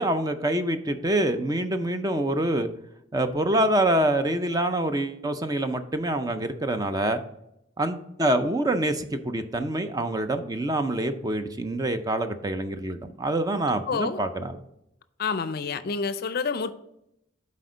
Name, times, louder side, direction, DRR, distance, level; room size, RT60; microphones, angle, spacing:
voice 1, 0.0-2.7 3.1-7.2 7.8-14.6, right 1 dB, 20° right, 8 dB, 0.5 m, -26 dB
voice 2, 13.9-14.2 15.2-16.7, left 5 dB, 55° left, 13 dB, 0.4 m, -28 dB
8.0 x 4.3 x 5.0 m, 0.81 s
head